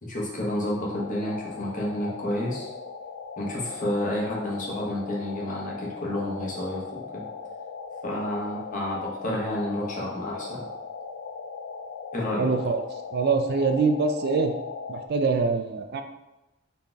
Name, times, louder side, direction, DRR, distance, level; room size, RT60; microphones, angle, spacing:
voice 1, 0.0-2.7 3.4-6.8 7.1-7.2 8.0-10.6 12.1-12.5, left 1 dB, 45° left, -4 dB, 1.2 m, -30 dB
sound 1, 0.9-15.1, left 5 dB, 85° left, 0.4 m, -39 dB
voice 2, 12.4-12.8 13.1-14.5 14.9-16.0, right 4 dB, 55° right, 6 dB, 0.4 m, -24 dB
4.2 x 3.2 x 3.4 m, 0.95 s
head